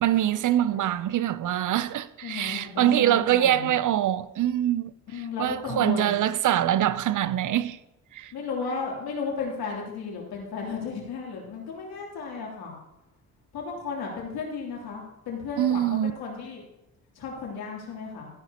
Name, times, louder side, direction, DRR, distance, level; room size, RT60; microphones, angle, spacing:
voice 1, 0.0-4.9 5.4-7.8 8.1-8.3 15.6-16.1, right 12 dB, 55° right, 0.6 m, -24 dB
voice 2, 2.2-3.7 5.1-6.3 8.3-12.7 13.5-16.6 17.1-18.3, left 5 dB, 80° left, 3.1 m, -34 dB
13.5 x 10.5 x 2.9 m
cardioid pair, 80°, 37 cm